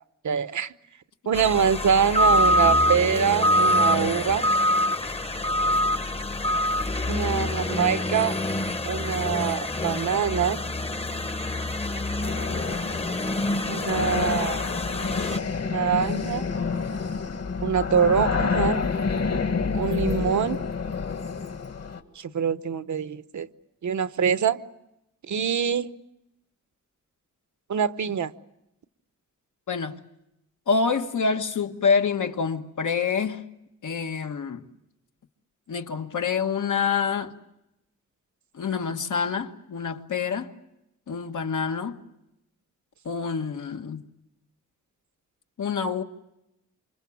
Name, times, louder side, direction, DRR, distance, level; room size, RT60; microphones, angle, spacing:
voice 1, 0.2-0.7 1.3-4.5 7.1-8.4 8.8-10.6 13.7-14.6 15.7-16.4 17.6-18.8 19.7-20.6 22.2-23.5 23.8-24.6 25.3-25.9 27.7-28.3, right 7 dB, 75° right, 1.0 m, -24 dB
sound 1, 1.3-15.4, left 1 dB, 20° left, 0.9 m, -25 dB
sound 2, 12.2-22.0, left 5 dB, 55° left, 1.9 m, -28 dB
voice 2, 29.7-30.0 30.7-33.4 33.8-34.6 35.7-37.3 38.5-40.5 41.1-42.0 43.0-44.0 45.6-46.0, left 5 dB, 80° left, 1.7 m, -26 dB
28.5 x 26.0 x 7.2 m
wide cardioid pair, 135°, 30 cm